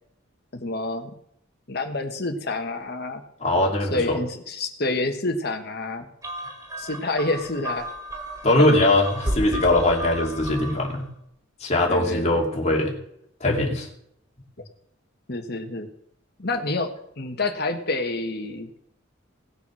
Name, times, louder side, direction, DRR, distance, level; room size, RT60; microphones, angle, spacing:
voice 1, 0.5-1.1 1.7-3.2 3.9-6.1 6.8-7.9 11.9-12.4 14.6-14.7 15.3-15.9 16.4-16.9 17.2-18.7, left 2 dB, 50° left, 6 dB, 1.5 m, -28 dB
voice 2, 3.4-4.2 8.4-11.1 11.6-12.9 13.4-13.9, left 1 dB, 30° left, -1 dB, 2.5 m, -21 dB
sound 1, 6.2-11.0, right 1 dB, 15° right, 1.9 m, -33 dB
18.0 x 7.0 x 6.3 m, 0.74 s
head